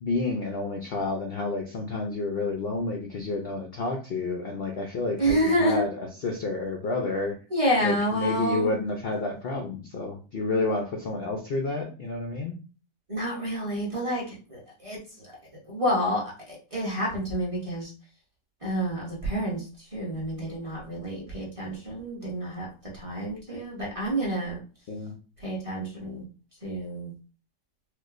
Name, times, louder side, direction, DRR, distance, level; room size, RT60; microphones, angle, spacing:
voice 1, 0.0-7.3 7.8-12.5 24.9-25.1, left 3 dB, 80° left, 2 dB, 0.5 m, -30 dB
voice 2, 5.2-5.8 7.5-8.7 13.1-14.2 14.5-15.3 15.7-17.9 18.6-19.6 19.9-22.7 22.9-24.6 25.4-26.2 26.6-27.1, equal, 25° right, -5 dB, 0.8 m, -28 dB
4.5 x 2.2 x 2.5 m, 0.36 s
omnidirectional pair, 1.7 m